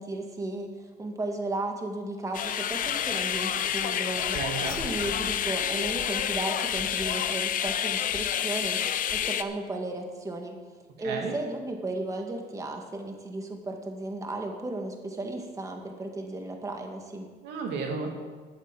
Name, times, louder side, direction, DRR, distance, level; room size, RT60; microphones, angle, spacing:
voice 1, 0.0-4.4 4.8-8.8 9.1-10.6 11.0-17.3, right 2 dB, 20° right, 2 dB, 1.8 m, -34 dB
sound 1, 2.3-9.4, left 10 dB, 55° left, 0.7 m, -29 dB
voice 2, 4.3-4.8 11.0-11.3 17.4-18.1, right 5 dB, 85° right, 2 dB, 2.6 m, -32 dB
12.5 x 8.4 x 7.5 m, 1.5 s
cardioid pair, 110°, 17 cm